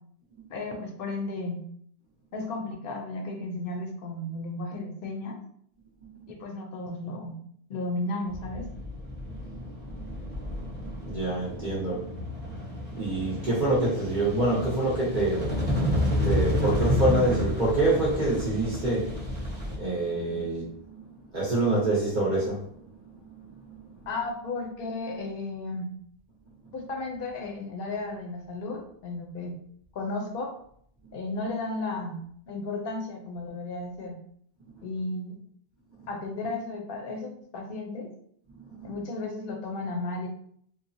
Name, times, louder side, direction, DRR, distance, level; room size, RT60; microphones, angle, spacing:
voice 1, 0.5-1.6 2.3-5.4 6.3-7.3 7.7-8.7 24.1-25.9 26.7-29.5 29.9-30.5 31.1-34.2 34.8-35.4 36.1-38.1 38.8-40.3, left 2 dB, 65° left, 2 dB, 0.7 m, -34 dB
sound 1, 8.3-19.8, left 1 dB, 15° left, 0.4 m, -30 dB
voice 2, 10.7-12.1 12.9-15.6 16.0-19.2 19.7-21.0 21.3-22.7 23.7-23.8 38.6-38.9, right 2 dB, 50° right, -7 dB, 0.8 m, -26 dB
3.0 x 2.0 x 2.5 m, 0.65 s
omnidirectional pair, 1.1 m